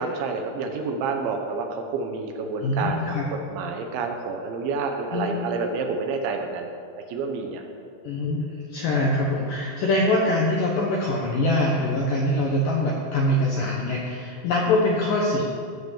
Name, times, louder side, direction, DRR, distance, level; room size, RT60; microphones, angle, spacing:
voice 1, 0.0-6.7 7.0-7.6, right 4 dB, 75° right, 4 dB, 3.2 m, -29 dB
voice 2, 2.6-3.2 5.1-5.3 8.0-15.4, left 1 dB, 75° left, -2 dB, 2.0 m, -23 dB
16.0 x 5.9 x 7.2 m, 2.4 s
omnidirectional pair, 5.5 m